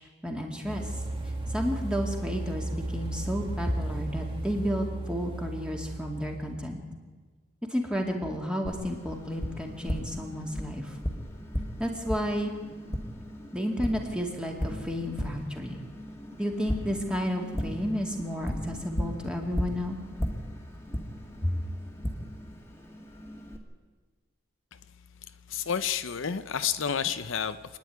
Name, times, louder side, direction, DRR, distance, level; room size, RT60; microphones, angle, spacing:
voice 1, 0.2-0.9 1.5-6.8 7.7-11.0 11.8-12.6 13.5-15.8 16.4-20.0 21.4-21.6, equal, 5° right, 1 dB, 2.4 m, -31 dB
sound 1, 0.7-6.6, right 2 dB, 25° right, 2.2 m, -35 dB
Tap, 8.7-23.6, equal, 15° left, 1.9 m, -36 dB
voice 2, 25.5-27.8, left 7 dB, 70° left, 12 dB, 0.7 m, -30 dB
27.0 x 10.5 x 9.4 m, 1.4 s
head